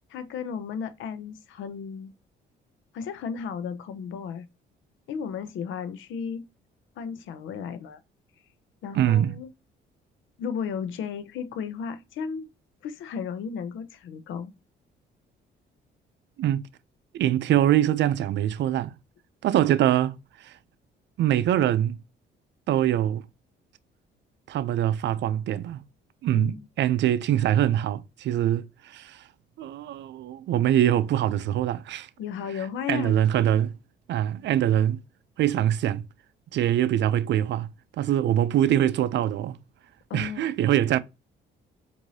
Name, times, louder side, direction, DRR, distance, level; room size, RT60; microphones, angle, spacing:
voice 1, 0.1-2.1 2.9-4.5 5.1-6.5 7.0-8.0 8.8-9.5 10.4-12.5 12.8-14.5 26.3-26.7 32.2-33.1 40.1-40.5, left 7 dB, 80° left, 0.6 m, -34 dB
voice 2, 8.9-9.4 16.4-16.6 17.1-18.9 19.4-20.5 21.2-22.0 22.7-23.2 24.5-25.8 26.2-29.2 29.6-32.1 32.9-33.7 34.1-35.0 35.4-36.1 36.5-37.7 38.0-39.6 40.1-41.0, right 11 dB, 65° right, 0.4 m, -23 dB
4.7 x 2.6 x 2.7 m
cardioid pair, 90°, 20 cm